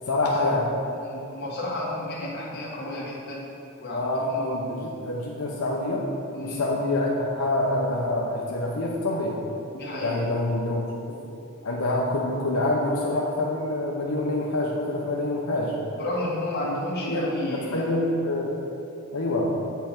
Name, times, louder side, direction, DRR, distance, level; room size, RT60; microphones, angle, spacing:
voice 1, 0.1-0.7 3.9-6.1 6.4-9.4 10.0-11.2 11.6-15.8 17.0-18.6 19.1-19.5, left 2 dB, 85° left, -2 dB, 0.8 m, -26 dB
voice 2, 0.9-3.5 3.8-4.9 6.3-6.6 9.7-10.3 16.0-17.9, left 1 dB, 50° left, -5 dB, 1.8 m, -32 dB
8.3 x 5.5 x 4.4 m, 2.7 s
head